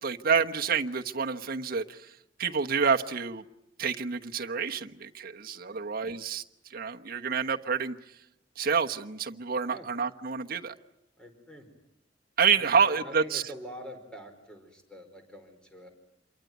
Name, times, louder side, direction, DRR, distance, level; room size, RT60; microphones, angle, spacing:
voice 1, 0.0-2.0 2.4-3.4 3.8-6.4 6.7-8.0 8.6-10.7 12.4-13.4, right 6 dB, 50° right, 4 dB, 1.1 m, -28 dB
voice 2, 11.2-11.7 12.6-15.9, equal, 5° left, 4 dB, 4.4 m, -45 dB
27.0 x 23.0 x 9.3 m, 0.82 s
head